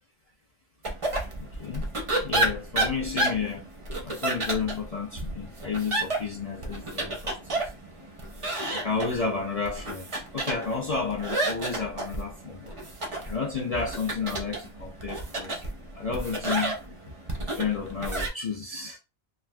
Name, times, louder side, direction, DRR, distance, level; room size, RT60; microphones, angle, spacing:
sound 1, 0.8-18.3, right 1 dB, 40° right, 0.4 m, -31 dB
voice 1, 1.4-1.9 2.2-3.7 4.0-7.6 8.0-8.1 8.7-12.8 13.3-15.6 15.9-19.0, left 5 dB, 75° left, 0.3 m, -32 dB
3.2 x 2.4 x 2.3 m
omnidirectional pair, 1.4 m